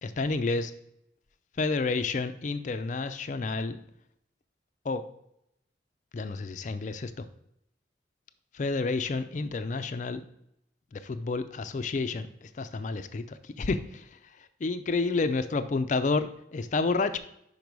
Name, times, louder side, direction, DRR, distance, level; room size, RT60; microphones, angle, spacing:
voice 1, 0.0-0.7 1.6-3.8 4.9-5.0 6.1-7.3 8.5-10.2 10.9-14.1 14.6-17.2, left 3 dB, 40° left, 10 dB, 0.4 m, -30 dB
5.2 x 4.7 x 5.2 m, 0.77 s
head